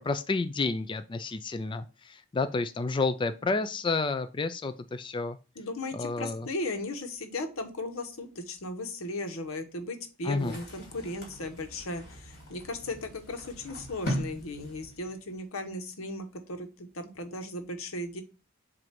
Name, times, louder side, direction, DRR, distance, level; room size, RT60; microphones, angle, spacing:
voice 1, 0.0-5.4 5.9-6.5 10.2-10.6, left 3 dB, 25° left, 10 dB, 0.3 m, -30 dB
voice 2, 5.6-18.2, left 2 dB, 90° left, 7 dB, 1.2 m, -36 dB
sound 1, 10.4-15.4, equal, 50° left, 2.9 m, -39 dB
7.6 x 2.6 x 5.8 m, 0.33 s
head